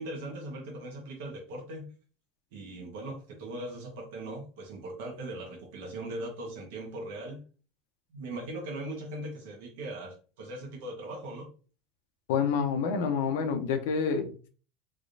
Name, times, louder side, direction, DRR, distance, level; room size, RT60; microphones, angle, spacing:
voice 1, 0.0-1.9 2.5-7.4 8.1-11.5, right 1 dB, 75° right, 0 dB, 1.3 m, -39 dB
voice 2, 12.3-14.5, left 6 dB, 80° left, 5 dB, 0.7 m, -28 dB
3.5 x 3.2 x 2.6 m, 0.37 s
supercardioid pair, 105°, 0 cm